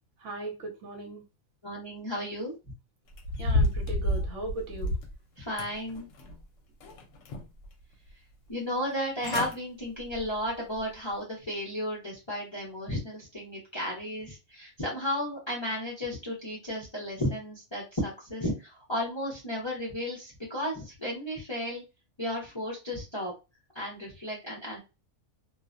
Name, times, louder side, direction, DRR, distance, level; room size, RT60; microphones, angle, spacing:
voice 1, 0.2-1.2 3.4-5.0, right 2 dB, 65° right, 2 dB, 1.0 m, -38 dB
voice 2, 1.6-2.6 5.4-6.1 8.5-21.8 22.2-23.3 23.7-24.8, left 1 dB, 30° left, -3 dB, 0.6 m, -34 dB
sound 1, 3.1-5.1 5.6-6.4 6.8-7.7 8.1-8.2 8.9-9.0 9.2-9.6 10.0-10.3 10.8-10.9, left 1 dB, 70° left, 0.9 m, -30 dB
2.4 x 2.0 x 2.5 m, 0.27 s
omnidirectional pair, 1.4 m